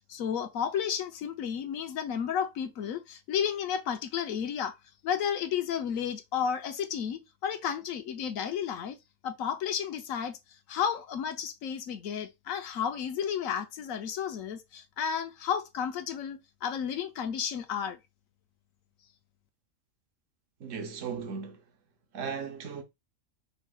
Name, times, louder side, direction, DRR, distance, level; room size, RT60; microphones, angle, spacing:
voice 1, 0.0-4.7 5.0-9.0 9.2-10.4 10.7-18.0, left 8 dB, 85° left, 1.2 m, -32 dB
voice 2, 20.6-21.6 22.1-22.8, right 6 dB, 75° right, 1.4 m, -36 dB
5.5 x 3.5 x 2.4 m
omnidirectional pair, 1.4 m